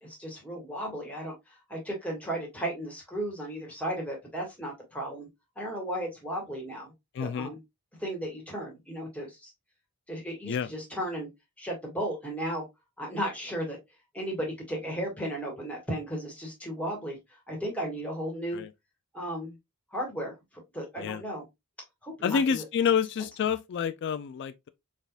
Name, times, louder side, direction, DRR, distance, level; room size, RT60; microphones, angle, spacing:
voice 1, 0.0-5.3 5.6-6.9 7.2-7.6 8.0-9.5 10.1-11.3 11.6-12.7 13.0-13.8 14.1-17.2 17.5-18.6 19.1-19.5 19.9-20.3 20.7-21.4 22.0-22.6, right 1 dB, 5° left, 1.8 m, -35 dB
voice 2, 7.1-7.5 10.5-10.7 18.5-18.7 21.0-21.2 22.2-24.7, left 7 dB, 55° left, 0.3 m, -28 dB
4.2 x 3.5 x 2.4 m
head